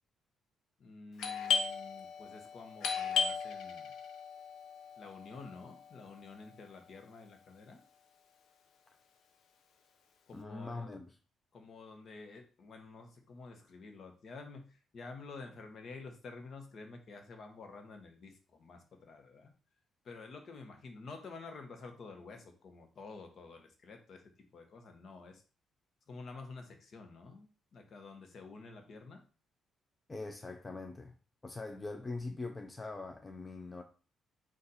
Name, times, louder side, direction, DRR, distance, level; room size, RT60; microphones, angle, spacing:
voice 1, 0.8-3.9 5.0-7.8 10.3-10.9 11.5-19.5 20.0-25.4 26.1-29.2, left 3 dB, 55° left, 0.9 m, -50 dB
Doorbell, 1.2-6.6, left 6 dB, 75° left, 0.7 m, -36 dB
voice 2, 10.3-11.2 30.1-31.1 31.4-33.8, left 3 dB, 20° left, 0.4 m, -42 dB
4.1 x 2.5 x 4.1 m
cardioid pair, 90°, 0 cm